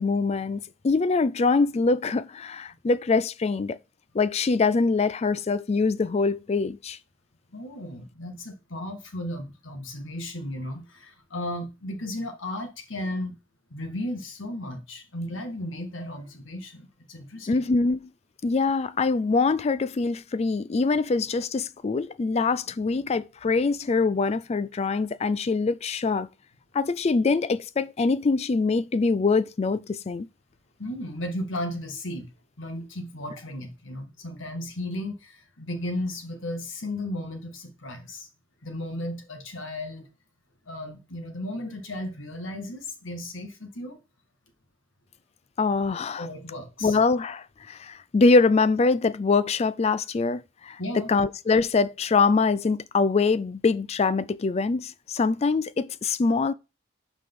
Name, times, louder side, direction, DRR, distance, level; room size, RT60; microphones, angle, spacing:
voice 1, 0.0-3.8 4.1-7.0 17.5-18.1 18.4-26.3 26.7-30.3 45.6-46.3 46.8-50.8 51.1-56.5, left 4 dB, 30° left, 0.3 m, -24 dB
voice 2, 7.5-13.4 13.7-17.6 30.8-32.3 32.6-38.3 38.6-40.1 40.7-44.0 46.2-47.0 50.8-51.1, left 1 dB, 75° left, 1.8 m, -35 dB
5.9 x 4.9 x 5.4 m
head